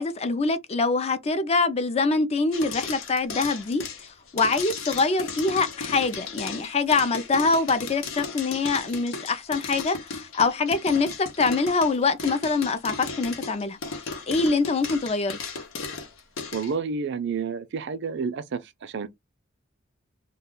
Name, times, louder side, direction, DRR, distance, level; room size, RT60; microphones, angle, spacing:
voice 1, 0.0-13.8 14.3-15.4, left 3 dB, 30° left, 0.4 m, -24 dB
sound 1, 2.5-16.7, left 4 dB, 85° left, 0.7 m, -35 dB
voice 2, 16.5-19.1, right 5 dB, 60° right, 0.5 m, -30 dB
2.3 x 2.2 x 3.6 m
head